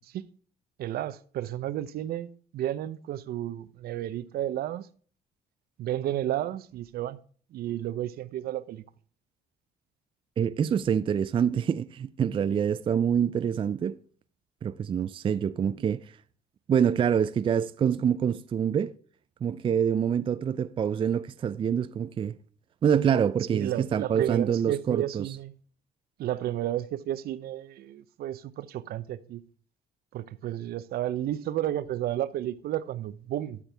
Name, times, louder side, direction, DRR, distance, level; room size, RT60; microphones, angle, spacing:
voice 1, 0.8-4.9 5.8-7.2 7.5-8.8 23.5-25.5 26.2-29.4 30.1-33.6, right 12 dB, 65° right, 0.7 m, -32 dB
voice 2, 10.4-14.0 14.6-16.1 16.7-18.9 19.4-22.4 22.8-25.3, right 8 dB, 30° right, 0.4 m, -26 dB
12.0 x 6.1 x 3.4 m
cardioid pair, 110°, 17 cm